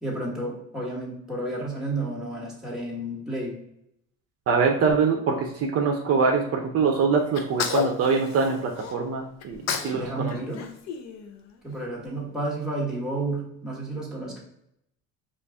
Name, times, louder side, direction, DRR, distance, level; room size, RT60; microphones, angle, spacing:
voice 1, 0.0-3.6 9.7-10.7 11.6-14.4, right 2 dB, ahead, -4 dB, 1.5 m, -31 dB
voice 2, 4.5-10.3, right 5 dB, 50° right, 1 dB, 0.7 m, -24 dB
Sneeze, 7.3-8.9 9.4-10.0 10.3-11.7, left 6 dB, 60° left, 0.6 m, -31 dB
5.1 x 2.5 x 3.4 m, 0.75 s
cardioid pair, 120°, 30 cm